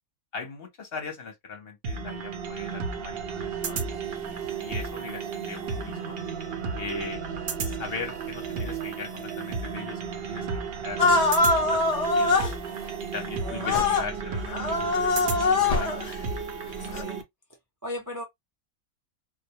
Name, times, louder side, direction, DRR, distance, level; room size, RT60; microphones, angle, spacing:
voice 1, 0.3-6.2 6.8-7.2 7.6-10.0 10.3-12.5 13.1-16.0, left 4 dB, 55° left, 0.8 m, -40 dB
sound 1, 1.8-17.2, right 5 dB, 60° right, 0.7 m, -33 dB
sound 2, 11.0-12.5 13.6-14.1 14.5-16.1 16.9-17.0, left 3 dB, 70° left, 0.3 m, -23 dB
voice 2, 13.4-13.8 16.8-17.2 17.8-18.2, left 1 dB, 30° right, 0.4 m, -37 dB
2.2 x 2.2 x 2.7 m
omnidirectional pair, 1.4 m